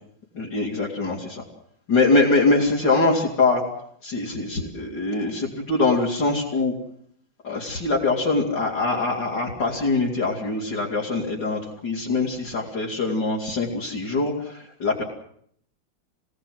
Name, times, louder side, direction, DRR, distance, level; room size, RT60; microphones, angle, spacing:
voice 1, 0.4-1.4 1.9-3.6 4.0-6.7 7.4-15.0, left 3 dB, 65° left, -4 dB, 3.8 m, -23 dB
25.5 x 17.5 x 7.9 m, 0.65 s
omnidirectional pair, 2.0 m